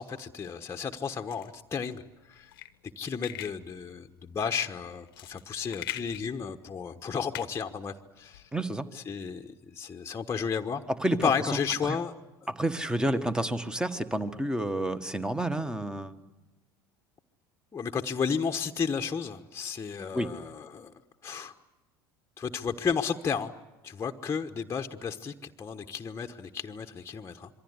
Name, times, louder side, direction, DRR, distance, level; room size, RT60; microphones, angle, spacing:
voice 1, 0.0-2.0 2.3-2.5 3.0-8.5 8.9-10.8 11.2-12.1 12.4-12.5 13.1-13.3 17.7-20.9 21.2-21.5 22.4-23.5 23.8-27.5, left 6 dB, 20° left, 3 dB, 1.2 m, -33 dB
sound 1, 1.3-8.5, left 14 dB, 70° left, 1.0 m, -44 dB
voice 2, 8.5-8.9 11.0-11.3 11.8-12.0 12.5-16.1 20.1-20.3, right 1 dB, 5° right, 11 dB, 1.6 m, -29 dB
26.5 x 23.5 x 8.2 m, 1.1 s
figure-of-eight pair, 70°, 12 cm